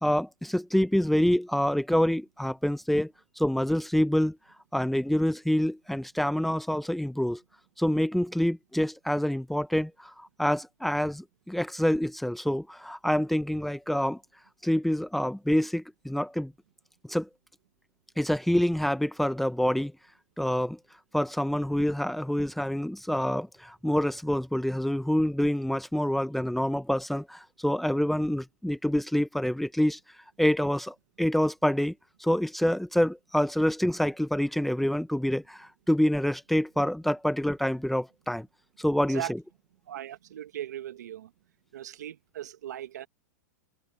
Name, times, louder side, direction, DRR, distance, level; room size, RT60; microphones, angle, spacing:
voice 1, 0.0-4.4 4.7-7.4 7.8-14.2 14.6-16.5 17.0-17.3 18.2-19.9 20.4-20.8 21.1-30.0 30.4-31.9 32.2-38.5 38.8-39.4, equal, ahead, 1.0 m, -27 dB
voice 2, 39.9-41.3 41.7-43.1, right 12 dB, 75° right, 1.7 m, -38 dB
hypercardioid pair, 135°, 9 cm